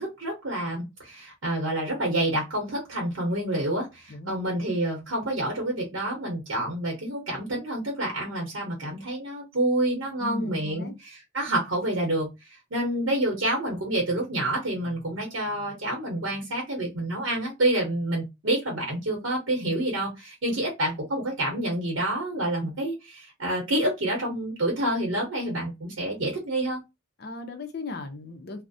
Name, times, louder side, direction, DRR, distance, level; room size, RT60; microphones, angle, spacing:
voice 1, 0.0-26.8, right 1 dB, 85° right, 0.8 m, -28 dB
voice 2, 10.2-10.9 27.2-28.6, left 3 dB, 50° left, 0.5 m, -37 dB
2.3 x 2.0 x 2.6 m
head